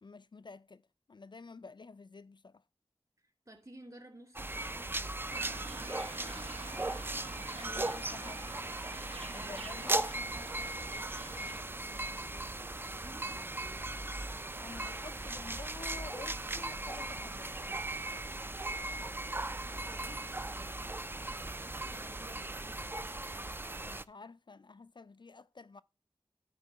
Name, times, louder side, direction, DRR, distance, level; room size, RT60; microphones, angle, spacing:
voice 1, 0.0-2.6 7.3-8.5 9.3-10.1 14.6-17.5 23.8-25.8, left 4 dB, 50° left, 0.3 m, -50 dB
voice 2, 3.4-6.3 9.3-13.9 19.1-21.1 21.6-22.9, right 1 dB, 40° right, 3.0 m, -56 dB
sound 1, 4.4-24.0, right 2 dB, 20° right, 0.4 m, -38 dB
sound 2, 5.3-11.6, right 2 dB, 85° right, 1.2 m, -48 dB
11.0 x 3.7 x 6.8 m
wide cardioid pair, 50°, 10 cm